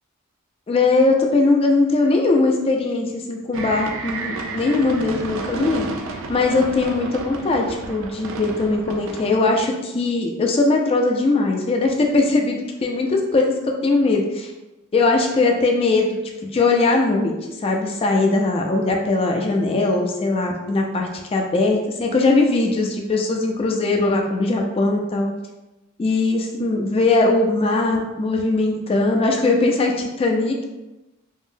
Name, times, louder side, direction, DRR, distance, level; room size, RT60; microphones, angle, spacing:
voice 1, 0.7-14.5 14.9-17.3 17.6-25.3 26.0-30.6, left 3 dB, 25° left, 1 dB, 0.3 m, -20 dB
sound 1, 3.5-9.5, right 3 dB, 65° right, 0.3 m, -32 dB
3.6 x 2.0 x 2.5 m, 1.0 s
head